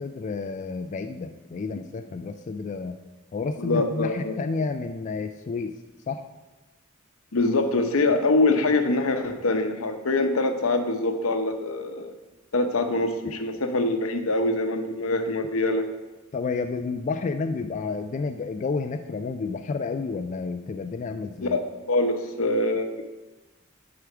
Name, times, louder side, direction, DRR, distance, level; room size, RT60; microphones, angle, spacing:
voice 1, 0.0-3.0 3.3-5.7 6.1-6.2 16.3-21.6, left 4 dB, 35° left, 7 dB, 0.3 m, -30 dB
voice 2, 3.6-4.4 7.3-12.1 12.5-15.8 21.4-21.6 21.9-23.0, left 2 dB, 80° left, 7 dB, 0.8 m, -24 dB
6.5 x 4.9 x 5.9 m, 1.2 s
head